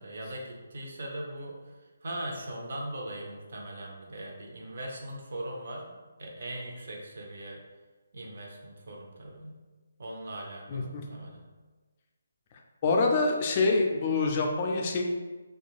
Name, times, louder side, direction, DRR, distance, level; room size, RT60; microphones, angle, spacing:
voice 1, 0.0-1.7 2.0-5.9 6.2-7.6 8.1-9.6 10.0-11.4, right 1 dB, 60° right, -1 dB, 0.6 m, -40 dB
voice 2, 10.7-11.0 12.8-15.0, left 3 dB, 35° left, 1 dB, 0.4 m, -26 dB
2.8 x 2.3 x 2.4 m, 1.3 s
figure-of-eight pair, 155°, 0 cm